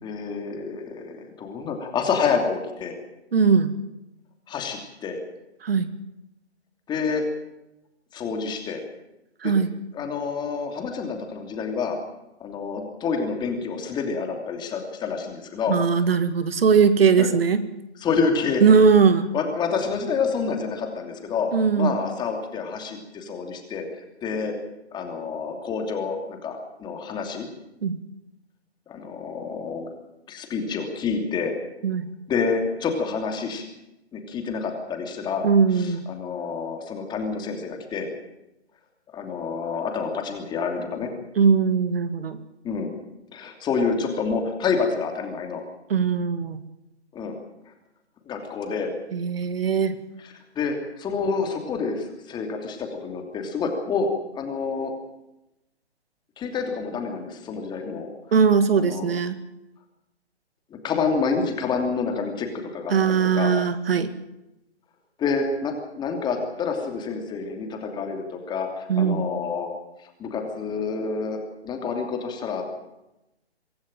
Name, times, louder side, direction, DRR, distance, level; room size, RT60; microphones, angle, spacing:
voice 1, 0.0-3.0 4.5-5.2 6.9-7.2 8.1-8.8 9.4-9.5 9.9-12.0 12.4-15.8 17.2-17.3 18.0-18.8 19.3-21.5 21.8-24.5 24.9-27.5 28.9-29.9 30.3-31.5 32.3-33.6 34.1-35.5 35.7-38.1 39.1-41.1 42.6-42.9 43.3-45.6 47.1-47.4 48.2-48.9 50.2-54.1 54.3-54.9 56.4-58.1 58.8-59.1 60.7-63.5 65.2-69.7 70.0-72.6, left 5 dB, 15° left, 4 dB, 2.8 m, -28 dB
voice 2, 3.3-3.7 5.6-5.9 9.4-9.7 15.7-17.6 18.6-19.3 21.5-21.9 27.8-28.0 31.8-32.1 35.4-36.0 41.4-42.4 45.9-46.6 49.1-50.0 58.3-59.4 62.9-64.1 68.9-69.2, right 6 dB, 60° right, 11 dB, 2.0 m, -20 dB
24.0 x 13.5 x 9.0 m, 0.92 s
hypercardioid pair, 145°, 34 cm